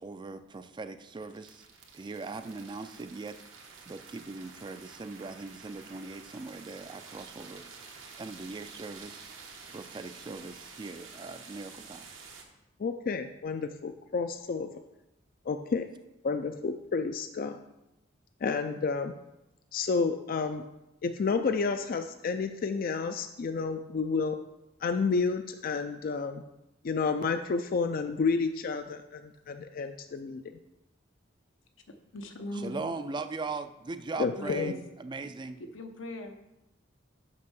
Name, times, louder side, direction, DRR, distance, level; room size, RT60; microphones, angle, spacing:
voice 1, 0.0-1.6 1.9-3.4 3.9-7.6 8.2-9.3 9.7-12.1 32.6-35.6, right 3 dB, 25° right, 10 dB, 0.4 m, -40 dB
sound 1, 1.0-12.4, right 5 dB, 85° right, 1.2 m, -49 dB
voice 2, 12.8-14.7 15.5-15.8 16.2-17.6 18.4-19.1 19.7-20.6 21.0-24.4 24.8-26.4 26.8-30.4 34.2-34.7, left 4 dB, 50° left, 7 dB, 0.4 m, -30 dB
voice 3, 32.1-32.8 34.2-34.8 35.6-36.3, left 2 dB, 85° left, 5 dB, 0.9 m, -38 dB
5.9 x 5.5 x 6.1 m, 0.91 s
head